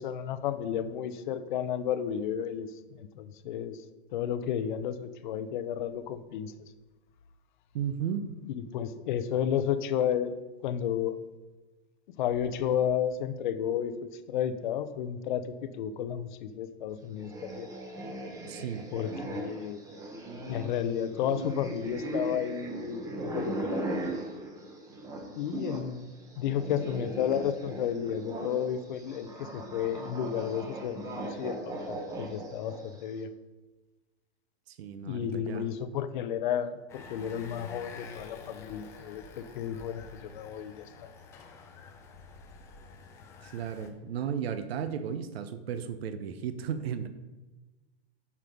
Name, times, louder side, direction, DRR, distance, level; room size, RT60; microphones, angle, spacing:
voice 1, 0.0-3.8 4.1-6.7 8.5-11.2 12.2-17.7 18.9-19.8 20.5-23.9 25.3-33.3 35.0-41.1, left 9 dB, 50° left, 12 dB, 0.7 m, -32 dB
voice 2, 7.7-8.2 18.5-18.9 34.7-35.7 43.4-47.1, right 8 dB, 65° right, 10 dB, 0.9 m, -34 dB
sound 1, 17.2-25.9 26.2-33.0, right 1 dB, 10° right, 0.9 m, -38 dB
sound 2, 36.9-43.9, left 4 dB, 10° left, 0.4 m, -48 dB
8.5 x 6.3 x 5.3 m, 1.2 s
hypercardioid pair, 155°, 33 cm